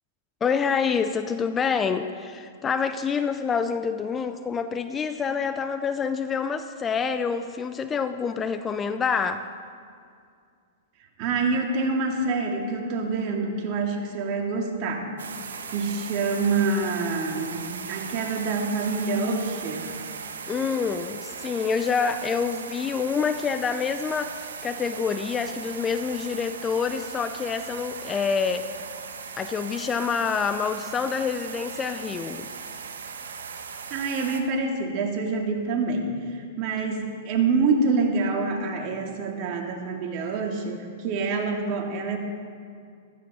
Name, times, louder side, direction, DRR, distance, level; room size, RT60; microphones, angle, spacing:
voice 1, 0.4-9.5 20.5-28.7 29.4-32.5, left 6 dB, 20° left, 10 dB, 0.5 m, -27 dB
voice 2, 11.2-15.0 15.7-19.9 33.9-42.2, right 4 dB, 45° right, 1 dB, 2.3 m, -26 dB
sound 1, 15.2-34.4, right 6 dB, 80° right, 1.2 m, -38 dB
15.0 x 13.5 x 4.3 m, 2.2 s
hypercardioid pair, 120°, 0 cm